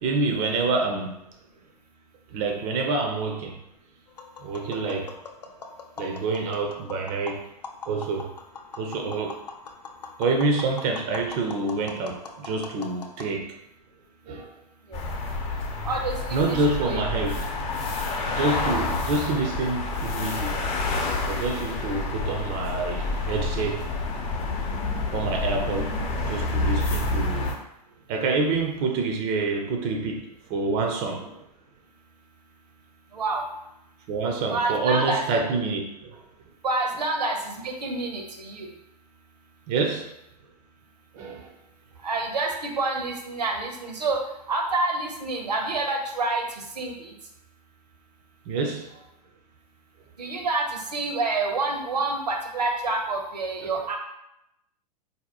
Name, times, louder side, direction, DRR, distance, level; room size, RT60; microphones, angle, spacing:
voice 1, 0.0-1.2 2.3-3.6 4.4-5.2 6.0-7.4 7.9-8.3 8.8-9.4 10.2-13.5 14.3-14.5 16.3-17.9 18.3-20.6 21.2-23.8 25.1-26.0 26.2-27.5 28.1-31.4 34.1-36.2 39.7-40.1 41.1-41.5 48.5-49.0 53.6-53.7, right 3 dB, 35° right, 3 dB, 0.5 m, -27 dB
Tap, 4.1-13.3, left 4 dB, 75° left, 0.5 m, -42 dB
sound 1, 14.9-27.5, left 2 dB, 30° left, 0.6 m, -28 dB
voice 2, 15.8-17.0 33.1-33.4 34.5-35.2 36.6-38.7 42.0-44.2 44.5-47.1 50.2-54.0, right 3 dB, 75° right, 3 dB, 0.7 m, -28 dB
3.9 x 2.7 x 2.8 m, 0.83 s
figure-of-eight pair, 95°, 21 cm